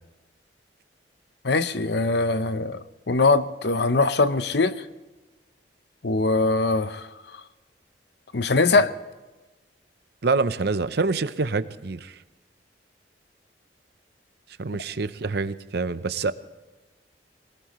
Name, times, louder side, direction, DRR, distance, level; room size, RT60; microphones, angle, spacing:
voice 1, 1.4-4.7 6.0-7.1 8.3-8.9, left 3 dB, 65° left, 12 dB, 0.8 m, -22 dB
voice 2, 10.2-12.2 14.6-16.3, right 3 dB, 65° right, 13 dB, 0.7 m, -26 dB
22.5 x 19.5 x 3.1 m, 1.2 s
head